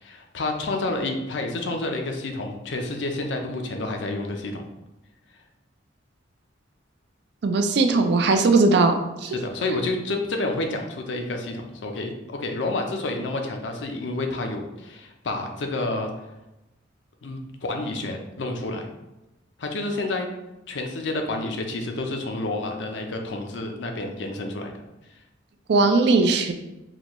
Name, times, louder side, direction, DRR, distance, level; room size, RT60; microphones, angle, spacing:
voice 1, 0.0-4.6 9.3-16.1 17.2-18.9 19.6-20.3 20.7-24.7, left 2 dB, 70° left, 4 dB, 0.5 m, -29 dB
voice 2, 7.4-8.9 9.2-9.4 25.7-26.5, right 3 dB, 60° right, 6 dB, 0.4 m, -19 dB
3.9 x 2.2 x 2.9 m, 0.98 s
head